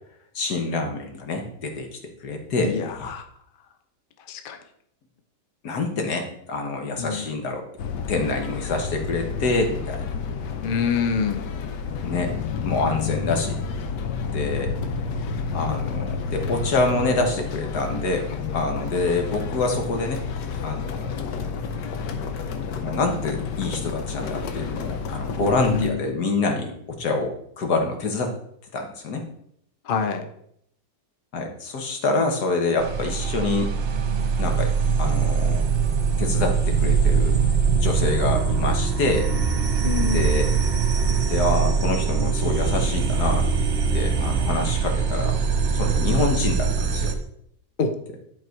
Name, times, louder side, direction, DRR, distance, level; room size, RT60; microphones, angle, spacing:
voice 1, 0.3-3.1 5.6-10.2 12.0-12.3 12.6-13.6 14.2-14.7 15.5-18.3 18.5-20.2 20.6-21.2 22.8-28.3 28.7-29.3 31.3-33.7 34.4-34.7 35.0-35.6 36.2-37.4 37.8-39.3 40.0-40.5 41.3-43.5 43.9-45.4 45.7-47.1, left 3 dB, 70° left, 3 dB, 1.7 m, -26 dB
voice 2, 2.6-3.2 4.3-4.6 7.0-7.3 10.6-11.4 25.7-26.0 29.8-30.3 39.8-40.3 47.8-48.2, left 5 dB, 50° left, 6 dB, 0.7 m, -26 dB
sound 1, 7.8-25.9, left 5 dB, 85° left, 1.4 m, -30 dB
sound 2, 32.8-47.1, right 5 dB, 50° right, 1.1 m, -22 dB
11.0 x 4.0 x 4.5 m, 0.71 s
omnidirectional pair, 1.8 m